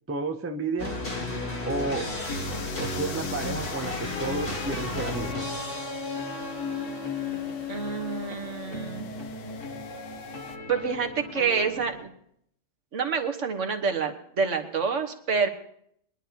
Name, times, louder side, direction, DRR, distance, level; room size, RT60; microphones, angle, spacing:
voice 1, 0.1-1.0 1.7-2.1 2.8-5.4, right 3 dB, 15° right, 7 dB, 0.5 m, -31 dB
sound 1, 0.8-12.0, left 2 dB, 50° left, 2.4 m, -34 dB
sound 2, 2.2-10.6, left 7 dB, 80° left, 1.2 m, -44 dB
voice 2, 7.7-9.1 10.7-12.1 12.9-15.5, right 5 dB, 75° right, 5 dB, 1.6 m, -27 dB
22.5 x 11.0 x 2.9 m, 0.68 s
omnidirectional pair, 1.3 m